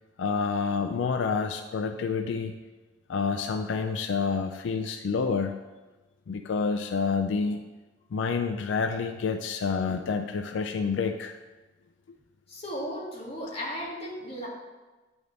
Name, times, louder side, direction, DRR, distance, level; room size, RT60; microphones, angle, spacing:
voice 1, 0.2-2.5 3.1-5.5 6.3-7.6 8.1-11.3, left 5 dB, 90° left, 6 dB, 0.4 m, -28 dB
voice 2, 12.5-14.5, equal, 35° left, -4 dB, 1.6 m, -35 dB
9.6 x 3.5 x 3.9 m, 1.2 s
head